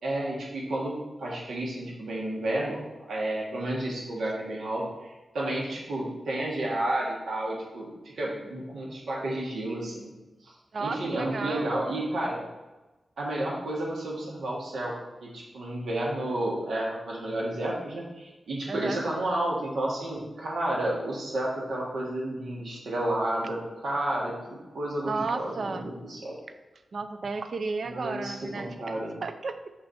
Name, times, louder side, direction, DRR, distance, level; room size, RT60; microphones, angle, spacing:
voice 1, 0.0-10.1 10.4-10.5 10.8-12.4 13.2-14.9 15.2-26.4 27.8-29.2, right 1 dB, 80° right, -3 dB, 1.6 m, -31 dB
voice 2, 10.7-11.7 18.7-19.0 25.1-25.9 26.9-28.7 29.2-29.7, right 4 dB, 50° right, 9 dB, 0.4 m, -33 dB
5.5 x 4.1 x 4.2 m, 1.1 s
wide cardioid pair, 175°, 0 cm